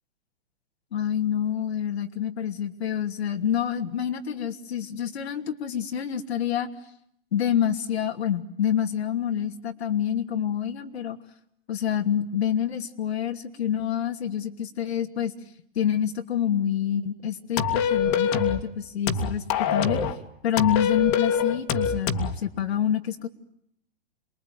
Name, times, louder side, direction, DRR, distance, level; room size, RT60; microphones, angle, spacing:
voice 1, 0.9-6.7 7.3-11.2 11.7-15.3 15.7-19.4 19.7-20.0 20.4-23.3, left 9 dB, 80° left, 5 dB, 2.8 m, -27 dB
sound 1, 17.6-18.6 19.1-20.2 20.6-22.3, left 7 dB, 35° left, 2.4 m, -24 dB
28.0 x 22.5 x 9.4 m, 0.73 s
hypercardioid pair, 150°, 31 cm